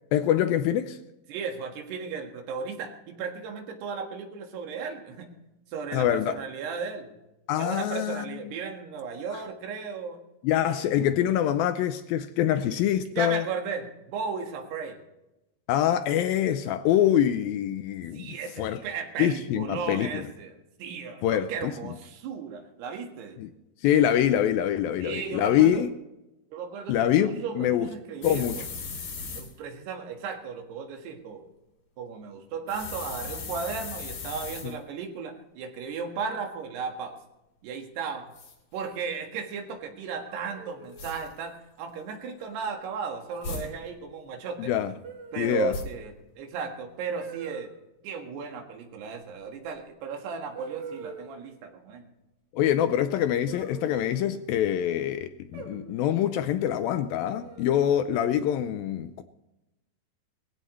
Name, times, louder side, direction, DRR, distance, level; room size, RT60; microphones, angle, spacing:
voice 1, 0.1-1.0 5.9-6.4 7.5-8.4 10.4-13.4 15.7-18.8 19.2-20.3 21.2-21.7 23.4-23.5 23.8-25.9 26.9-27.9 28.2-28.5 34.6-34.8 44.6-44.9 45.4-45.7 52.5-59.2, left 10 dB, 80° left, 2.2 m, -25 dB
voice 2, 1.3-5.3 5.7-7.1 7.6-10.2 10.7-10.9 12.6-12.7 13.1-15.0 18.1-20.5 20.8-23.4 25.0-25.8 26.5-28.6 29.4-31.5 32.0-37.2 37.6-38.3 38.7-44.7 45.3-47.7 48.0-52.1, right 5 dB, 85° right, 3.8 m, -35 dB
sound 1, 28.2-29.5 32.7-34.7 38.3-38.5 41.0-41.3 43.4-43.7 45.7-45.8, left 4 dB, 55° left, 4.4 m, -37 dB
sound 2, 40.3-41.1 42.4-42.8 43.3-43.6 45.0-45.7 47.1-47.7 49.7-49.8 50.5-51.5 53.5-54.6 55.5-56.2 57.4-58.0, right 5 dB, 50° right, 4.4 m, -44 dB
20.0 x 16.0 x 3.2 m
omnidirectional pair, 4.6 m